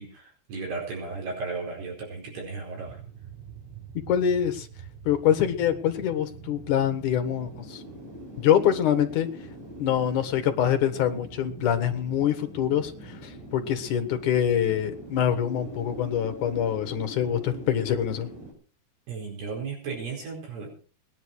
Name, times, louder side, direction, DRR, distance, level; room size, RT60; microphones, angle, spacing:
voice 1, 0.0-3.0 19.1-20.7, right 4 dB, 70° right, -1 dB, 6.6 m, -35 dB
sound 1, 2.8-18.5, right 1 dB, 45° right, 7.3 m, -43 dB
voice 2, 4.1-4.7 5.1-7.8 8.4-9.3 9.8-18.3, left 9 dB, 60° left, 7 dB, 2.4 m, -25 dB
20.0 x 10.5 x 4.7 m, 0.39 s
omnidirectional pair, 4.9 m